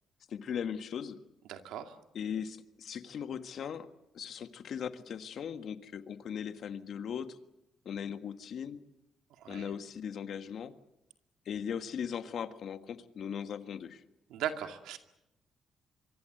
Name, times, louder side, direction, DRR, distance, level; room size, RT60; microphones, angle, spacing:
voice 1, 0.3-1.2 2.1-3.9 4.1-7.4 7.8-8.8 9.5-10.7 11.4-14.0, left 8 dB, 60° left, 10 dB, 1.6 m, -38 dB
voice 2, 1.5-2.0 9.4-9.7 14.3-15.0, right 10 dB, 90° right, 6 dB, 2.3 m, -38 dB
24.5 x 24.0 x 7.9 m, 0.86 s
cardioid pair, 105°, 0 cm